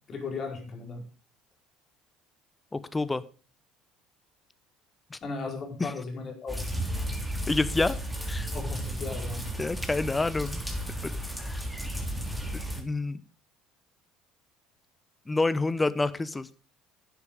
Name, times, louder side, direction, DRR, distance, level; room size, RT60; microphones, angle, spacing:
voice 1, 0.1-1.0 5.2-6.5 8.5-9.5, left 4 dB, 40° left, 2 dB, 4.4 m, -36 dB
voice 2, 2.7-3.2 5.1-5.2 5.8-5.9 7.5-8.0 8.3-8.5 9.6-10.6 11.0-11.1 11.4-11.6 12.5-13.2 15.3-16.5, left 3 dB, 15° left, 15 dB, 1.0 m, -28 dB
sound 1, 6.5-12.8, equal, ahead, 3.2 m, -33 dB
11.5 x 8.4 x 5.1 m, 0.35 s
hypercardioid pair, 60°, 0 cm